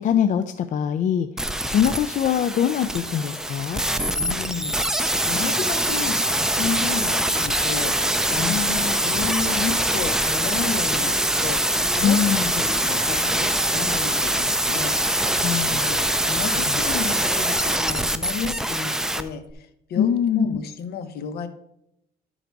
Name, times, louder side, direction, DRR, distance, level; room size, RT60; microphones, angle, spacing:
voice 1, 0.0-3.8 8.4-8.6 12.0-12.5 15.4-15.9 16.7-16.8 20.0-20.5, left 9 dB, 50° left, 9 dB, 0.4 m, -23 dB
sound 1, 1.4-19.2 19.5-19.6, right 1 dB, 5° right, 0.5 m, -23 dB
voice 2, 4.2-7.9 8.3-11.6 11.9-15.0 15.8-16.0 16.2-21.5, left 6 dB, 70° left, 8 dB, 1.0 m, -32 dB
11.5 x 3.9 x 4.6 m, 0.81 s
cardioid pair, 110°, 17 cm